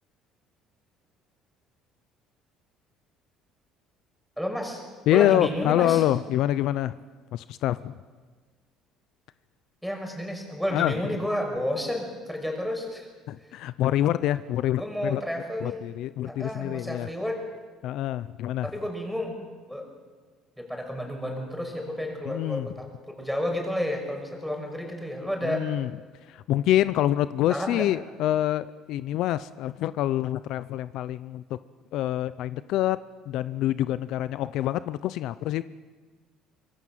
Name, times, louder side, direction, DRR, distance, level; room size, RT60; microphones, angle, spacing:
voice 1, 4.4-4.8 5.1-6.0 9.8-13.0 14.7-15.8 16.2-17.4 18.6-19.4 19.7-19.9 20.6-22.9 23.2-25.7 27.5-27.9, equal, ahead, 2 dB, 6.0 m, -31 dB
voice 2, 5.1-6.9 7.3-7.9 10.7-10.9 13.3-15.2 15.6-17.1 17.8-18.7 22.3-22.7 25.4-25.9 26.3-31.6 31.9-33.0 33.3-35.6, left 13 dB, 70° left, 15 dB, 0.6 m, -26 dB
25.5 x 22.0 x 7.6 m, 1.5 s
cardioid pair, 125°, 0 cm